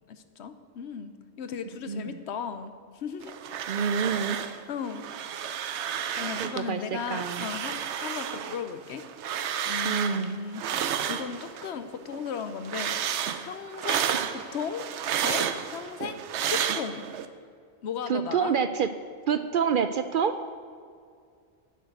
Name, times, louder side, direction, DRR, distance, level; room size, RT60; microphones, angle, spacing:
voice 1, 0.1-1.1 1.4-3.4 4.7-5.0 6.1-9.0 9.7-10.6 11.1-13.0 13.4-14.9 15.2-17.0 17.8-18.5, left 6 dB, 75° left, 10 dB, 1.0 m, -36 dB
voice 2, 1.9-2.2 3.7-4.4 6.4-7.5 9.8-10.3 14.1-14.3 18.1-18.9 19.3-20.3, right 7 dB, 60° right, 10 dB, 0.6 m, -27 dB
sound 1, 3.2-4.6 4.9-6.6 7.0-11.7 12.1-17.3, right 8 dB, 80° right, 0.9 m, -31 dB
10.0 x 6.5 x 7.9 m, 2.2 s
omnidirectional pair, 1.2 m